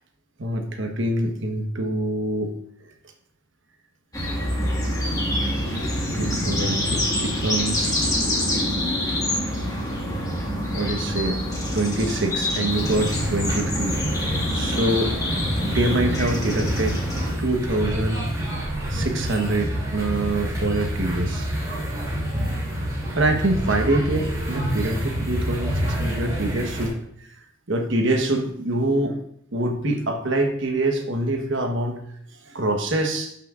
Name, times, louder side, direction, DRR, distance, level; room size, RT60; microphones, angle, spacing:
voice 1, 0.4-2.5 6.1-8.2 10.7-14.0 14.5-15.1 15.6-17.0 17.4-18.3 18.9-21.5 23.1-27.0 27.7-29.2 29.5-32.0 32.4-33.3, right 1 dB, 65° right, 4 dB, 1.2 m, -25 dB
sound 1, 4.1-17.3, left 1 dB, 15° left, 1.7 m, -26 dB
sound 2, 12.7-26.9, equal, 20° right, 2.8 m, -28 dB
12.5 x 5.9 x 2.5 m, 0.70 s
head